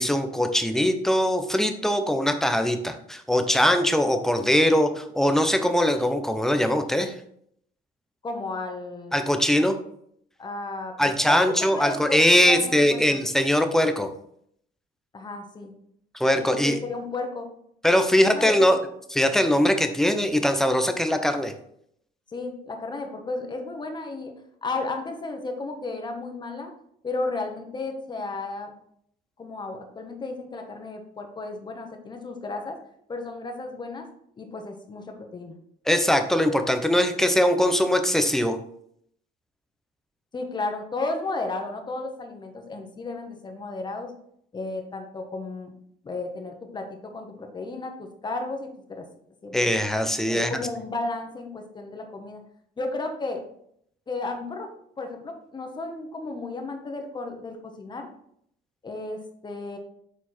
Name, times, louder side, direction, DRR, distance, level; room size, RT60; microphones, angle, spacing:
voice 1, 0.0-7.1 9.1-9.7 11.0-14.1 16.1-16.8 17.8-18.8 19.1-21.5 35.9-38.6 49.5-50.6, left 1 dB, ahead, 7 dB, 0.8 m, -21 dB
voice 2, 8.2-9.2 10.4-13.2 15.1-15.7 16.4-17.5 18.2-18.7 22.3-24.3 24.6-26.7 27.0-28.7 29.4-32.8 33.1-34.1 34.4-35.6 40.3-44.1 44.5-45.7 46.0-49.0 49.4-49.7 50.2-52.4 52.8-53.4 54.1-54.7 55.0-58.1 58.8-59.8, left 3 dB, 25° left, 4 dB, 1.4 m, -33 dB
7.3 x 4.4 x 4.4 m, 0.69 s
cardioid pair, 110°, 17 cm